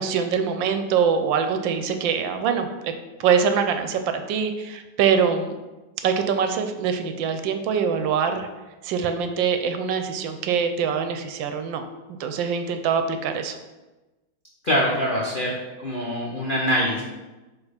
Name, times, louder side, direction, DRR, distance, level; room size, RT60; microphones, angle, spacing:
voice 1, 0.0-2.9 3.2-5.5 6.0-8.5 8.8-11.9 12.2-13.6, right 6 dB, 75° right, 7 dB, 1.3 m, -24 dB
voice 2, 14.6-15.5 15.8-17.0, equal, 65° left, -3 dB, 0.5 m, -23 dB
4.8 x 4.2 x 5.0 m, 1.1 s
omnidirectional pair, 2.2 m